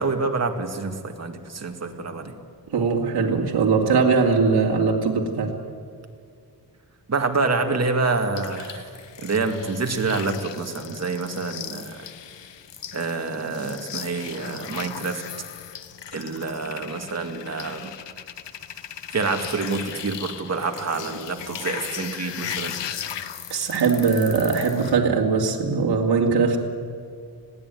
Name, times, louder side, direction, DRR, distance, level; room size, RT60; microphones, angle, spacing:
voice 1, 0.0-2.3 7.1-8.9 9.2-12.0 12.9-15.2 16.1-17.9 19.1-22.8, right 3 dB, 40° right, 4 dB, 2.2 m, -27 dB
voice 2, 2.7-5.5 23.2-23.3 23.5-26.6, right 5 dB, 65° right, 0 dB, 2.6 m, -21 dB
sound 1, 8.3-25.0, left 9 dB, 90° left, 1.1 m, -37 dB
20.5 x 16.0 x 9.2 m, 2.3 s
wide cardioid pair, 140°, 42 cm